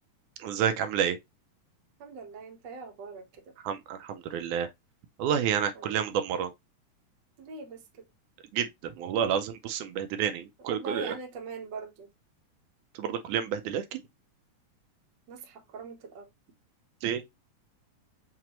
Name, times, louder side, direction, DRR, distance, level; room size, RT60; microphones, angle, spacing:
voice 1, 0.4-1.2 3.6-4.7 5.2-6.5 8.5-11.2 13.0-14.0 17.0-17.2, right 8 dB, 80° right, 2.0 m, -29 dB
voice 2, 2.0-3.4 5.7-6.0 7.4-7.8 10.6-12.1 15.3-16.3, right 4 dB, 60° right, 1.2 m, -41 dB
5.9 x 2.8 x 2.9 m
omnidirectional pair, 3.7 m